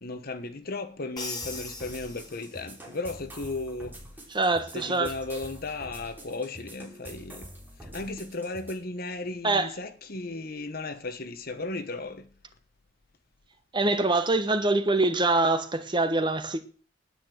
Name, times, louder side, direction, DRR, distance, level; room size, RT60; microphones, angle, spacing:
voice 1, 0.0-4.0 4.7-7.5 7.8-12.3, left 2 dB, 55° left, 1.3 m, -35 dB
Crash cymbal, 1.2-2.9, left 3 dB, 20° left, 2.7 m, -39 dB
sound 1, 1.4-8.7, right 1 dB, 10° right, 3.0 m, -46 dB
voice 2, 4.3-5.1 9.4-9.7 13.7-16.6, right 2 dB, 25° right, 1.1 m, -24 dB
9.9 x 8.9 x 7.7 m
head